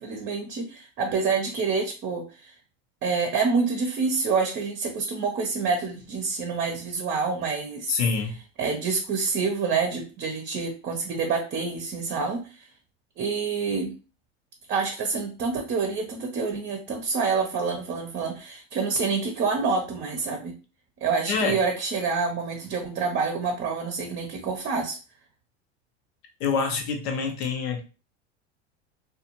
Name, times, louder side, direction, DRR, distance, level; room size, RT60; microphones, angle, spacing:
voice 1, 0.0-2.5 3.0-8.0 8.6-12.7 13.2-13.9 14.7-20.5 21.0-25.0, right 4 dB, 35° right, 3 dB, 0.6 m, -27 dB
voice 2, 7.9-8.4 21.3-21.6 26.4-27.8, left 5 dB, 75° left, 3 dB, 0.9 m, -26 dB
2.5 x 2.3 x 2.8 m, 0.34 s
hypercardioid pair, 95°, 33 cm